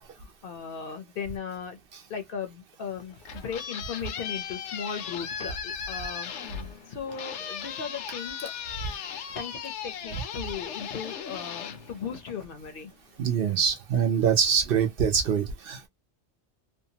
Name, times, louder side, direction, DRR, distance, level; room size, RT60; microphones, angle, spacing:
voice 1, 0.2-1.8 2.1-6.3 6.9-8.5 9.3-12.9, left 6 dB, 60° left, 0.7 m, -37 dB
sound 1, 3.0-12.7, left 7 dB, 85° left, 0.9 m, -37 dB
voice 2, 13.2-15.9, right 7 dB, 60° right, 0.7 m, -24 dB
2.7 x 2.1 x 2.7 m
omnidirectional pair, 1.2 m